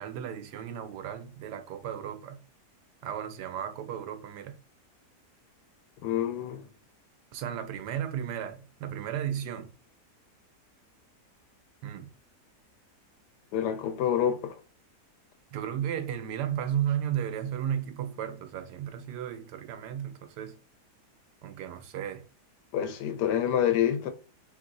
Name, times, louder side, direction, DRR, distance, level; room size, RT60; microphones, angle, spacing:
voice 1, 0.0-2.4 3.0-4.6 7.3-9.7 11.8-12.1 15.5-20.5 21.4-22.3, right 9 dB, 85° right, 1.2 m, -34 dB
voice 2, 6.0-6.6 13.5-14.6 22.7-24.1, left 9 dB, 85° left, 1.2 m, -27 dB
3.0 x 2.6 x 3.8 m
omnidirectional pair, 1.7 m